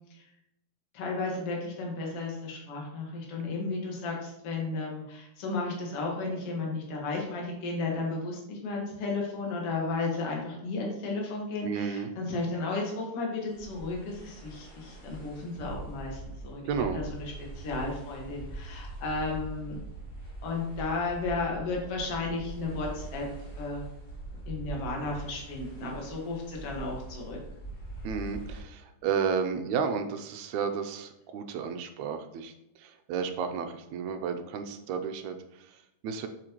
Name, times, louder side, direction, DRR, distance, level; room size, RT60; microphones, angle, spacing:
voice 1, 0.9-16.6 16.9-17.3 17.6-19.8 20.4-23.3 23.6-23.9 24.5-27.4, left 3 dB, 55° left, -1 dB, 2.5 m, -33 dB
voice 2, 11.6-12.1 16.7-17.0 28.0-36.3, right 6 dB, 85° right, 7 dB, 2.0 m, -32 dB
sound 1, 13.5-28.6, right 2 dB, 75° left, 3.9 m, -42 dB
7.8 x 7.4 x 3.0 m, 0.85 s
omnidirectional pair, 3.4 m